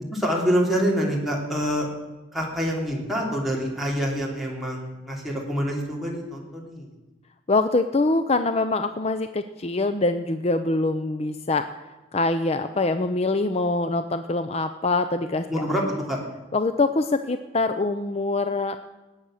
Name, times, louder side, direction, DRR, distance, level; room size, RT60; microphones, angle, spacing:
voice 1, 0.1-1.9 2.3-6.9 15.5-16.2, equal, ahead, -3 dB, 3.0 m, -26 dB
voice 2, 7.5-11.7 12.1-15.6 16.5-18.8, left 2 dB, 35° left, 9 dB, 0.6 m, -24 dB
19.0 x 8.8 x 6.4 m, 1.1 s
head